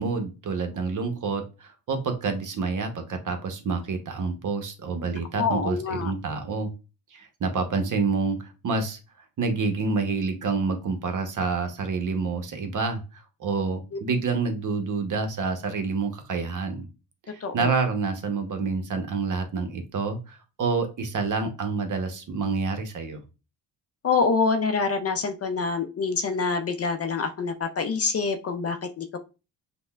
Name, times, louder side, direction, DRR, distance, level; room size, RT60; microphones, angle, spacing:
voice 1, 0.0-6.7 7.1-9.0 9.4-16.9 17.3-23.2, right 4 dB, 45° right, 6 dB, 0.8 m, -28 dB
voice 2, 5.4-6.1 17.4-17.7 24.0-29.2, left 4 dB, 35° left, 7 dB, 0.4 m, -26 dB
5.2 x 2.2 x 2.2 m, 0.30 s
supercardioid pair, 65°, 42 cm